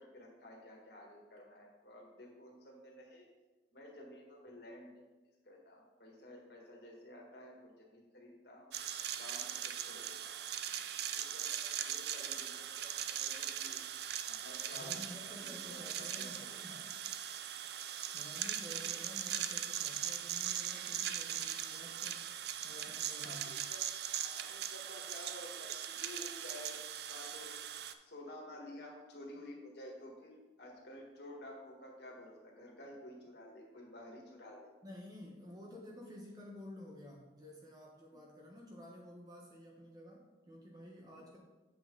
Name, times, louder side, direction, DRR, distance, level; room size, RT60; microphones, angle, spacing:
voice 1, 0.0-3.3 3.7-5.0 5.4-8.7 9.1-10.5 11.2-13.8 14.2-16.3 16.7-16.8 23.2-23.8 24.2-26.8 27.1-27.6 28.0-34.7 38.1-38.2, left 1 dB, 65° left, -1 dB, 1.8 m, -52 dB
sound 1, 8.7-27.9, right 10 dB, 60° right, 0.4 m, -40 dB
voice 2, 14.7-17.0 18.1-22.2 22.6-23.6 34.8-41.4, left 1 dB, 20° right, -2 dB, 1.0 m, -52 dB
7.6 x 5.8 x 3.9 m, 1.2 s
head